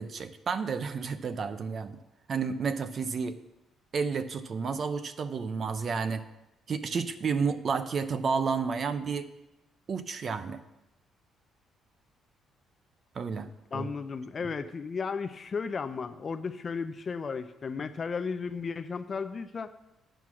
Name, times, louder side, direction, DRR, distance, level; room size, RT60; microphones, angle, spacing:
voice 1, 0.0-2.0 2.3-3.4 3.9-6.2 6.7-9.3 9.9-10.6 13.1-13.5 13.7-13.9, right 5 dB, 35° right, 11 dB, 0.5 m, -31 dB
voice 2, 13.7-19.7, left 5 dB, 30° left, 10 dB, 0.4 m, -34 dB
9.0 x 7.0 x 6.2 m, 0.92 s
cardioid pair, 165°, 0 cm